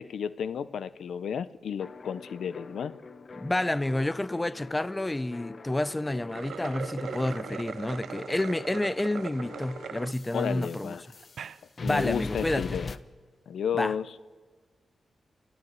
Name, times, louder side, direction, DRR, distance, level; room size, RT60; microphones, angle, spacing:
voice 1, 0.0-3.0 10.3-11.0 11.8-13.0 13.5-14.1, left 7 dB, 85° left, 0.7 m, -32 dB
sound 1, 1.8-11.5 11.8-13.0, left 3 dB, 50° left, 1.1 m, -42 dB
voice 2, 3.4-10.9 11.8-12.6 13.7-13.9, left 1 dB, 20° left, 0.7 m, -29 dB
sound 2, 6.2-10.1 10.6-10.7 11.2-11.6, right 7 dB, 80° right, 0.6 m, -39 dB
28.0 x 14.5 x 9.5 m
cardioid pair, 70°, 0 cm